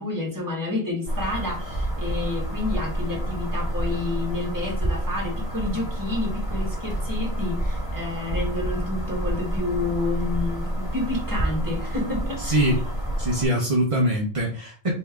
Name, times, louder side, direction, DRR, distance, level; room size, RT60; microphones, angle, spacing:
voice 1, 0.0-12.7, left 2 dB, 20° right, -2 dB, 1.6 m, -29 dB
sound 1, 1.1-13.5, right 1 dB, 45° left, 2.2 m, -28 dB
voice 2, 12.4-12.8 13.2-15.0, equal, 35° right, -1 dB, 0.9 m, -23 dB
4.2 x 3.3 x 3.6 m, 0.41 s
omnidirectional pair, 1.1 m